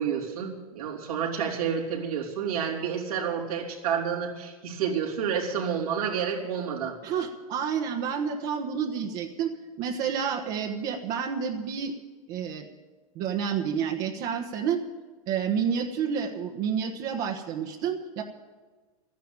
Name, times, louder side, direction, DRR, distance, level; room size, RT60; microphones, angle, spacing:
voice 1, 0.0-7.0, right 7 dB, 85° right, -2 dB, 3.9 m, -29 dB
voice 2, 7.0-11.9 12.3-12.7 13.1-14.8 15.3-18.2, right 7 dB, 45° right, 1 dB, 1.4 m, -29 dB
13.0 x 10.5 x 8.9 m, 1.3 s
hypercardioid pair, 120°, 18 cm